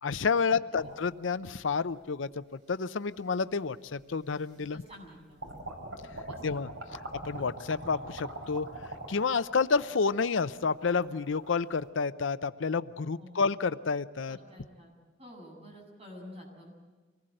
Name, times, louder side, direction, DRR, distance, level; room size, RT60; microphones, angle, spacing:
voice 1, 0.0-2.3 2.7-4.8 6.4-6.7 7.2-8.7 9.1-14.4, left 5 dB, 70° left, 13 dB, 0.6 m, -29 dB
sound 1, 0.7-1.9 2.7-2.8 4.0-4.1 4.5-5.1 5.4-11.9, right 1 dB, 80° right, 5.4 m, -43 dB
voice 2, 4.7-5.6 6.3-6.4 6.8-7.0 13.2-13.4 14.3-14.9 15.2-16.7, equal, 30° right, 0 dB, 7.7 m, -49 dB
25.0 x 19.5 x 7.8 m, 1.4 s
head